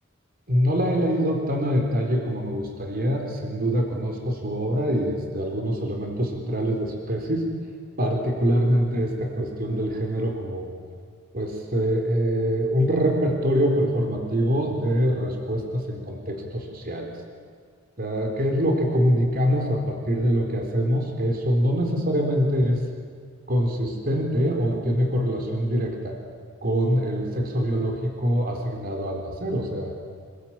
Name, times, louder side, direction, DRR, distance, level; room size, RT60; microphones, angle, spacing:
voice 1, 0.5-7.6 8.0-10.7 11.3-17.1 18.0-22.8 23.5-26.2 26.6-29.9, equal, 45° right, 3 dB, 4.0 m, -24 dB
27.0 x 21.5 x 9.0 m, 2.1 s
head